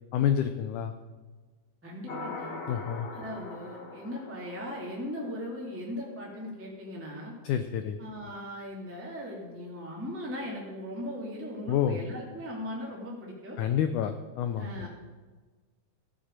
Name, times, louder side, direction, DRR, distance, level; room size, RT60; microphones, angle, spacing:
voice 1, 0.1-0.9 2.7-3.1 7.4-8.0 11.7-12.0 13.6-14.9, left 9 dB, 85° left, 8 dB, 1.8 m, -28 dB
voice 2, 1.8-2.6 3.1-7.3 8.0-13.6 14.6-14.9, left 1 dB, 5° right, -4 dB, 1.8 m, -38 dB
sound 1, 2.1-5.5, left 3 dB, 70° left, 1.0 m, -41 dB
14.5 x 8.9 x 6.6 m, 1.4 s
omnidirectional pair, 4.4 m